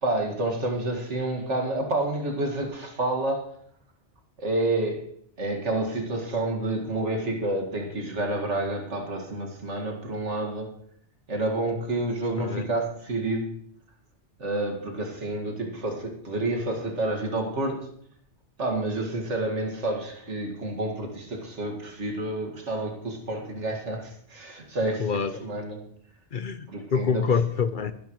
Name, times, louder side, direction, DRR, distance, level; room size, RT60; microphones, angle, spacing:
voice 1, 0.0-3.6 4.4-5.1 5.4-10.8 11.3-13.6 14.4-17.9 18.6-25.9 26.7-27.2, right 2 dB, 90° right, 2 dB, 2.3 m, -29 dB
voice 2, 25.0-25.3 26.3-27.9, left 6 dB, 55° left, 12 dB, 0.7 m, -26 dB
21.0 x 10.5 x 3.1 m, 0.65 s
omnidirectional pair, 1.2 m